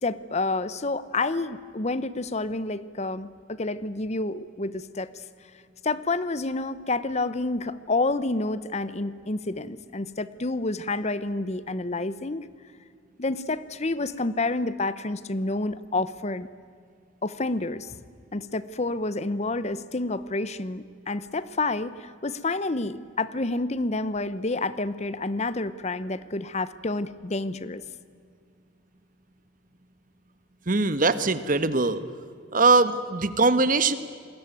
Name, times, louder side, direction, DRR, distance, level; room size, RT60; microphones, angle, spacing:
voice 1, 0.0-5.2 5.8-12.5 13.2-16.5 17.2-18.0 18.3-27.8, left 2 dB, 35° left, 16 dB, 0.8 m, -29 dB
voice 2, 30.7-32.0 32.5-33.9, right 3 dB, 40° right, 13 dB, 1.3 m, -21 dB
27.5 x 21.0 x 9.1 m, 2.2 s
head